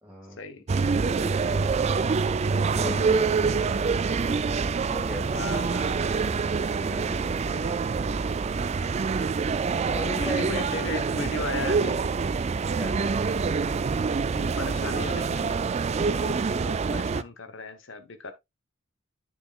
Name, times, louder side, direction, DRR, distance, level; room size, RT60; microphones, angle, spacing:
voice 1, 0.0-0.4 1.1-1.8 2.6-3.9 4.9-5.8 6.5-7.5 9.9-10.9 12.8-13.2, equal, 10° right, 2.0 m, -37 dB
sound 1, 0.7-17.2, right 5 dB, 30° right, 0.3 m, -26 dB
voice 2, 5.3-6.1 7.0-7.8 10.1-12.0 14.2-15.6 15.9-18.3, left 3 dB, 65° left, 1.1 m, -37 dB
9.1 x 6.8 x 2.4 m
head